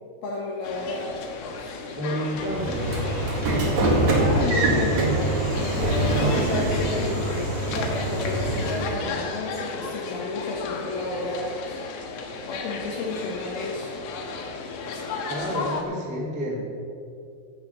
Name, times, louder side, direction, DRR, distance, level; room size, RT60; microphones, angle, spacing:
voice 1, 0.2-1.1 1.5-1.8 3.5-11.8 12.2-13.9 14.9-15.1, left 2 dB, 65° left, -3 dB, 3.0 m, -32 dB
sound 1, 0.6-15.8, left 4 dB, 85° left, 3.7 m, -34 dB
voice 2, 1.9-2.9 15.3-16.6, equal, 5° right, -4 dB, 1.0 m, -29 dB
Train / Sliding door, 2.4-8.9, right 1 dB, 45° right, 2.8 m, -24 dB
16.0 x 7.8 x 5.8 m, 2.5 s
omnidirectional pair, 5.1 m